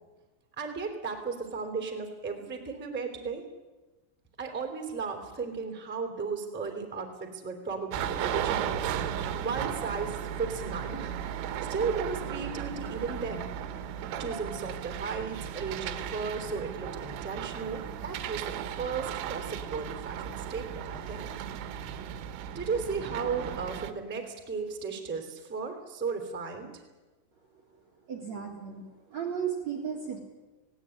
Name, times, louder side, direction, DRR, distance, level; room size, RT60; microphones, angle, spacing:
voice 1, 0.5-3.4 4.4-8.8 9.4-11.2 11.7-13.6 14.2-21.3 21.6-21.8 22.5-26.8, right 5 dB, 5° right, 4 dB, 1.6 m, -35 dB
sound 1, 7.9-23.9, right 9 dB, 80° right, 3.7 m, -35 dB
voice 2, 28.1-28.8 29.1-30.2, right 7 dB, 50° right, -1 dB, 2.3 m, -34 dB
18.5 x 17.0 x 9.9 m, 1.2 s
omnidirectional pair, 5.8 m